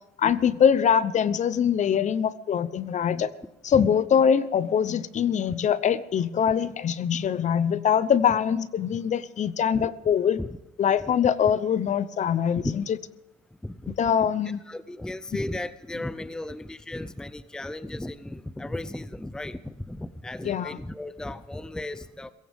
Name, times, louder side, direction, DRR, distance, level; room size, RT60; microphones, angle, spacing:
voice 1, 0.2-3.3 3.6-10.4 10.8-12.8 13.9-14.6 20.4-20.8, left 8 dB, 45° left, 16 dB, 0.8 m, -23 dB
voice 2, 13.6-14.3 14.6-22.3, left 1 dB, 5° left, 14 dB, 0.6 m, -35 dB
21.5 x 17.0 x 3.6 m, 0.98 s
cardioid pair, 110°, 17 cm